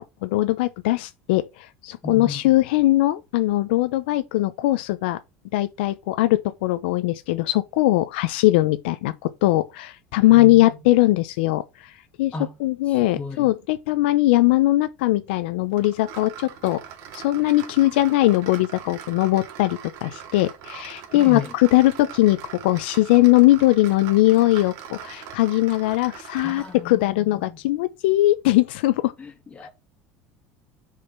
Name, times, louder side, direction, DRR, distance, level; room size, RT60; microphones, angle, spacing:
voice 1, 0.0-5.2 5.5-11.9 12.2-12.3 12.6-16.8 17.1-29.1, left 17 dB, 80° left, 0.7 m, -20 dB
voice 2, 2.0-2.4 12.3-12.5 12.9-13.5 21.1-21.5 26.4-27.6 29.2-29.7, left 3 dB, 20° left, 2.3 m, -35 dB
sound 1, 15.8-26.9, right 9 dB, 65° right, 2.1 m, -41 dB
6.7 x 5.0 x 5.5 m
supercardioid pair, 95°, 6 cm